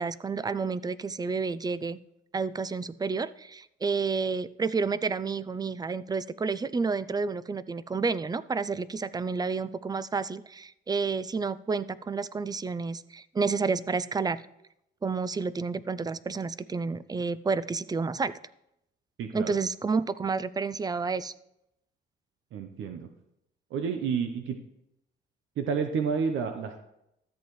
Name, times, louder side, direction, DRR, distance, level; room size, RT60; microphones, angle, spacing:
voice 1, 0.0-2.0 2.3-14.4 15.0-18.3 19.3-21.3, right 4 dB, 20° right, 17 dB, 0.4 m, -30 dB
voice 2, 19.2-19.6 22.5-23.1 23.7-24.6 25.6-26.8, right 6 dB, 80° right, 6 dB, 0.8 m, -30 dB
13.5 x 8.0 x 3.2 m, 0.81 s
cardioid pair, 90°, 20 cm